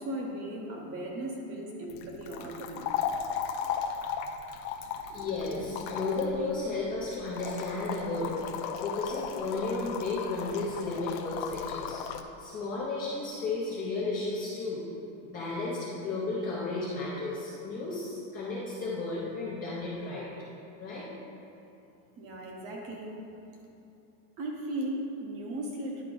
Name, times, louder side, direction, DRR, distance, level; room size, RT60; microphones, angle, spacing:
voice 1, 0.0-2.9 22.2-23.1 24.4-26.0, right 1 dB, 25° right, 0 dB, 0.7 m, -37 dB
sound 1, 1.9-12.2, left 8 dB, 80° left, 0.7 m, -36 dB
voice 2, 5.1-8.3 8.8-12.1 12.4-14.8 15.2-20.3 20.8-21.1, left 3 dB, 20° left, -7 dB, 0.5 m, -33 dB
10.5 x 4.7 x 3.8 m, 2.8 s
supercardioid pair, 170°, 50 cm